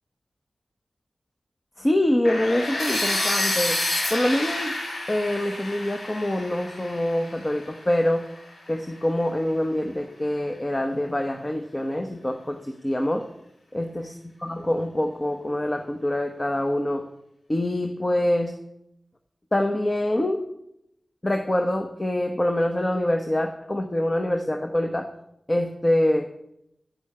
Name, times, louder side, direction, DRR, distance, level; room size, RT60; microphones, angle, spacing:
voice 1, 1.8-3.8 4.1-4.8 5.1-8.3 8.7-13.3 13.7-14.1 14.4-17.1 17.5-18.5 19.5-20.4 21.2-25.1 25.5-26.3, left 1 dB, 30° left, 6 dB, 1.0 m, -25 dB
sound 1, 2.2-8.2, left 1 dB, 90° left, 4.0 m, -29 dB
10.0 x 6.2 x 8.5 m, 0.81 s
cardioid pair, 50°, 0 cm